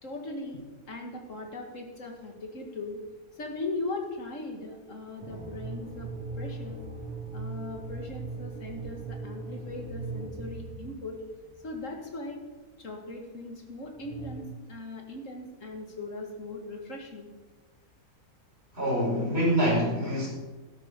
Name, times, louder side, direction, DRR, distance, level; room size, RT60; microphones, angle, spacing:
voice 1, 0.0-3.0 3.3-6.1 6.4-6.8 7.3-11.2 11.6-12.4 12.8-17.3, left 2 dB, 60° left, 2 dB, 2.4 m, -39 dB
sound 1, 5.2-11.7 14.0-14.4, right 3 dB, 90° right, 4.1 m, -39 dB
voice 2, 18.7-20.3, equal, 40° right, -4 dB, 5.3 m, -25 dB
12.5 x 12.0 x 5.3 m, 1.2 s
omnidirectional pair, 1.5 m